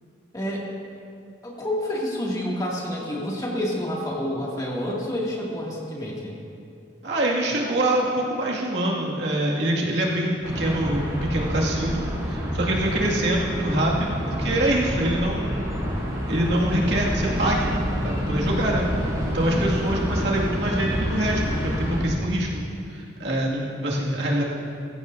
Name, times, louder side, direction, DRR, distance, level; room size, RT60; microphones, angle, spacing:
voice 1, 0.3-0.7 1.4-6.3 12.7-13.1 19.3-19.8, left 1 dB, 20° left, -4 dB, 2.3 m, -29 dB
voice 2, 7.0-15.8 16.3-17.8 18.0-18.9 19.2-22.5 22.9-24.4, right 1 dB, 65° right, -3 dB, 2.2 m, -25 dB
sound 1, 10.4-22.0, equal, 20° right, 3.4 m, -28 dB
20.0 x 15.5 x 2.7 m, 2.5 s
head